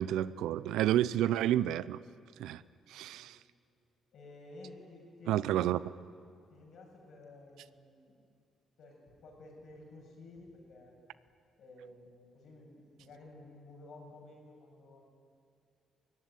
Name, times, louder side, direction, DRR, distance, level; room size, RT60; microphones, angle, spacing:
voice 1, 0.0-2.0 2.4-2.6 2.9-3.4 5.3-5.8, right 12 dB, 90° right, 17 dB, 0.6 m, -30 dB
voice 2, 2.9-3.3 4.1-5.8 6.5-8.2 8.8-11.0 11.6-15.0, left 2 dB, 70° left, 0 dB, 7.4 m, -53 dB
22.5 x 16.5 x 10.0 m, 2.3 s
cardioid pair, 90°, 0 cm